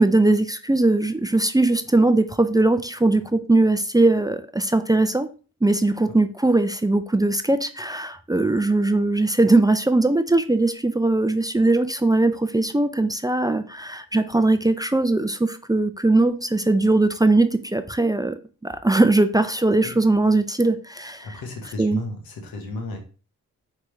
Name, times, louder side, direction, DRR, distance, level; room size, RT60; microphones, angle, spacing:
voice 1, 0.0-5.3 5.6-21.4 21.8-22.0, right 2 dB, 10° right, 10 dB, 0.4 m, -20 dB
voice 2, 21.2-23.0, left 2 dB, 85° left, 3 dB, 1.1 m, -33 dB
4.5 x 3.4 x 3.0 m, 0.36 s
supercardioid pair, 40°, 35 cm